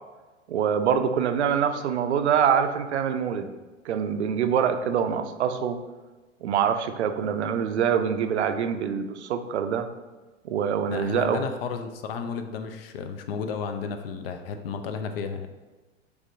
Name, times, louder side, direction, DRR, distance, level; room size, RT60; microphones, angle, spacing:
voice 1, 0.5-3.5 3.9-5.8 6.4-9.9 10.4-11.4, right 7 dB, 65° right, 8 dB, 0.5 m, -25 dB
voice 2, 10.9-15.5, left 6 dB, 50° left, 7 dB, 0.5 m, -33 dB
4.9 x 3.3 x 2.6 m, 1.2 s
figure-of-eight pair, 95°, 37 cm